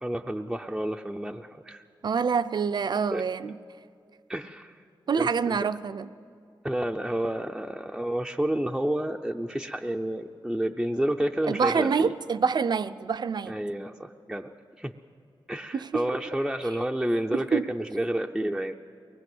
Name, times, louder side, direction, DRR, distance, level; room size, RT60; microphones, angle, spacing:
voice 1, 0.0-1.9 3.1-3.2 4.3-4.8 5.2-5.7 6.6-12.1 13.5-14.9 15.5-18.7, right 1 dB, 5° right, 1 dB, 0.6 m, -30 dB
voice 2, 2.0-3.5 5.1-6.1 11.5-13.5 15.7-16.0 17.5-17.7, right 5 dB, 55° right, 12 dB, 0.6 m, -26 dB
23.5 x 19.5 x 7.9 m, 2.4 s
wide cardioid pair, 160°, 8 cm